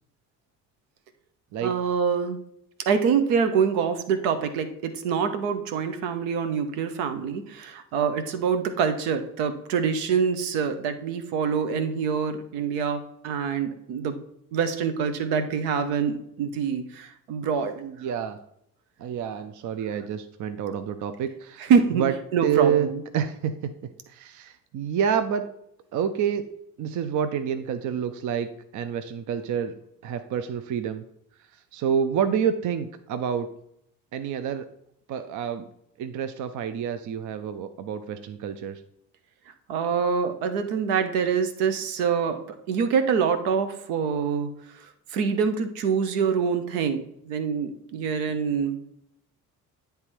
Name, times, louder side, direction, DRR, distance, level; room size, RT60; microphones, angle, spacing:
voice 1, 1.6-2.4 2.9-14.2 14.5-17.8 21.6-22.0 22.3-23.0 39.7-42.4 42.7-44.9 45.1-48.8, right 6 dB, 65° right, 8 dB, 1.0 m, -25 dB
voice 2, 17.8-18.4 19.0-22.1 22.4-22.9 23.1-23.7 24.1-25.5 25.9-26.5 26.8-28.5 28.7-29.7 30.0-31.0 31.7-33.5 34.1-34.7 35.1-35.7 36.0-38.8, right 8 dB, 45° right, 10 dB, 0.6 m, -28 dB
9.6 x 3.4 x 4.5 m, 0.73 s
figure-of-eight pair, 50°, 44 cm